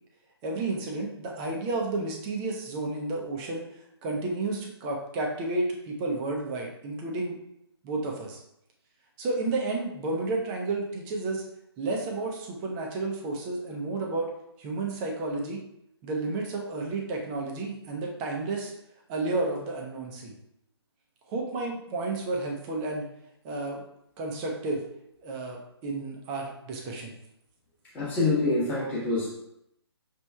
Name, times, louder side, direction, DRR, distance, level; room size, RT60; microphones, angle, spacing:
voice 1, 0.4-3.7 4.0-7.4 7.8-8.4 9.2-11.4 11.8-14.3 14.6-15.6 16.0-18.7 19.1-20.3 21.3-23.1 23.4-23.8 24.2-24.8 25.2-27.1, right 2 dB, 15° right, 0 dB, 0.5 m, -31 dB
voice 2, 27.9-29.3, left 3 dB, 10° left, -5 dB, 1.0 m, -26 dB
5.9 x 3.0 x 2.3 m, 0.78 s
figure-of-eight pair, 145°, 14 cm